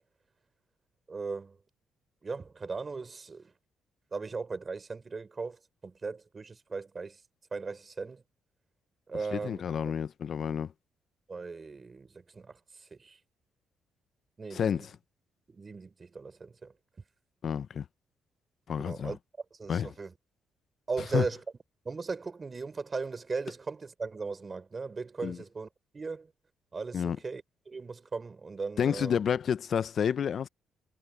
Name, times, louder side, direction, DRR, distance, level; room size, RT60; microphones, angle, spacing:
voice 1, 1.1-1.6 2.2-3.5 4.1-7.2 7.5-8.2 9.1-9.9 11.3-13.2 14.4-14.9 15.5-16.7 18.8-19.2 19.5-20.1 20.9-21.4 21.8-25.7 25.9-26.3 26.7-29.2, right 4 dB, 30° right, 4.9 m, -38 dB
voice 2, 9.3-10.7 14.5-14.9 17.4-17.8 18.7-19.2 19.7-19.9 21.1-21.2 25.2-25.4 26.9-27.2 28.8-30.5, left 8 dB, 55° left, 0.7 m, -29 dB
cardioid pair, 90°, 0 cm